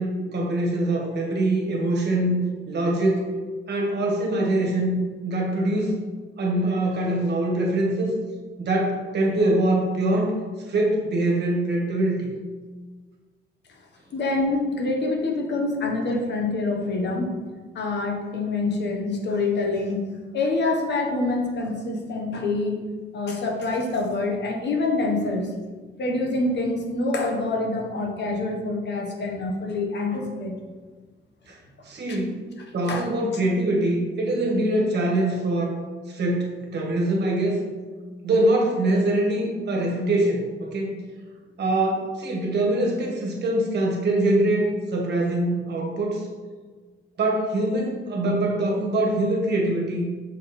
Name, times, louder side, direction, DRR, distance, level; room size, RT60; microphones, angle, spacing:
voice 1, 0.0-3.3 3.7-5.0 5.2-6.0 6.4-8.1 8.6-10.4 10.7-12.3 31.5-31.6 31.8-32.4 32.7-35.8 36.1-37.6 38.2-41.0 41.6-46.3 47.2-50.0, right 1 dB, 55° right, 0 dB, 1.4 m, -23 dB
voice 2, 14.1-17.3 17.7-20.0 20.3-22.8 23.1-25.5 26.0-30.5 32.1-32.2 32.9-33.0, left 3 dB, 60° left, 1 dB, 1.1 m, -26 dB
6.3 x 3.7 x 4.3 m, 1.4 s
cardioid pair, 115°, 20 cm